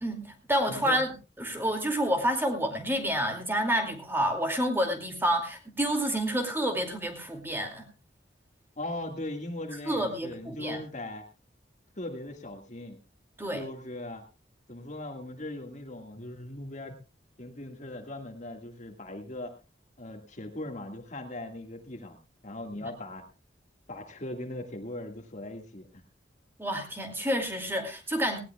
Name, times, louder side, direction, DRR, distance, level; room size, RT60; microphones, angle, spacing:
voice 1, 0.0-7.8 9.9-10.8 13.4-13.6 22.7-22.8 26.6-28.4, equal, 15° right, 4 dB, 2.5 m, -29 dB
voice 2, 0.7-1.0 8.8-11.3 12.0-13.0 13.5-14.2 14.7-16.9 17.4-19.6 20.0-22.2 22.4-23.2 23.9-25.9, left 1 dB, 45° left, 4 dB, 1.9 m, -39 dB
18.5 x 17.5 x 2.3 m, 0.29 s
head